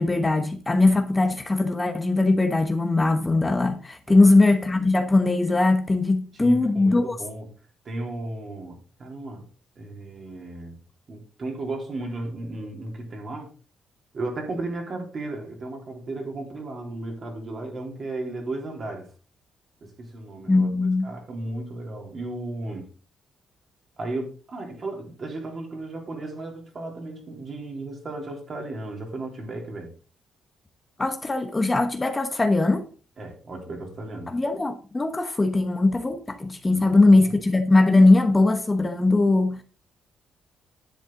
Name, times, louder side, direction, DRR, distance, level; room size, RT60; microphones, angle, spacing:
voice 1, 0.0-7.2 20.5-21.1 31.0-32.8 34.3-39.6, left 2 dB, 20° left, 1.1 m, -20 dB
voice 2, 4.1-4.5 6.3-7.5 7.8-9.5 9.8-10.8 11.1-13.5 14.1-19.1 19.8-20.7 21.0-22.9 24.0-29.9 33.2-34.3 36.7-37.6, right 2 dB, 45° right, 3.6 m, -35 dB
10.5 x 7.8 x 3.8 m
cardioid pair, 90°, 0 cm